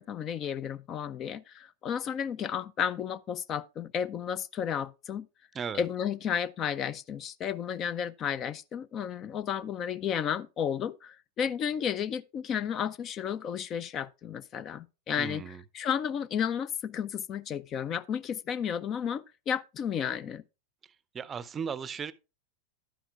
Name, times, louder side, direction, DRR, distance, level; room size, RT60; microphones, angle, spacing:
voice 1, 0.0-5.3 5.7-20.4, left 8 dB, 30° left, 0.4 m, -33 dB
voice 2, 15.2-15.6 21.1-22.1, right 6 dB, 20° right, 0.6 m, -36 dB
11.5 x 10.0 x 2.4 m
figure-of-eight pair, 90°, 0 cm